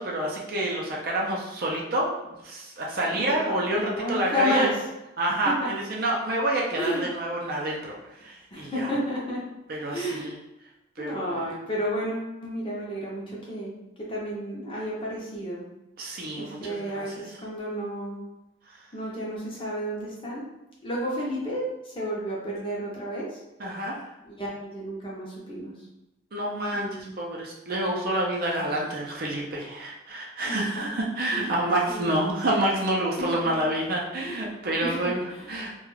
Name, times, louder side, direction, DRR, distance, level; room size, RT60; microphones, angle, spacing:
voice 1, 0.0-2.1 2.4-4.7 5.2-8.9 9.7-10.3 11.0-11.4 16.0-17.0 23.6-23.9 26.3-35.8, right 1 dB, 45° right, -2 dB, 0.5 m, -28 dB
voice 2, 3.1-4.8 5.6-5.7 6.8-7.1 8.5-9.4 9.9-10.3 11.0-13.7 14.1-15.6 16.4-18.2 18.9-20.4 20.8-23.4 24.2-25.7 26.7-27.1 30.5-30.9 31.3-31.5 31.9-32.7 33.2-33.6 34.2-34.4 34.8-35.5, equal, 25° left, -5 dB, 0.6 m, -32 dB
2.3 x 2.2 x 3.1 m, 0.95 s
head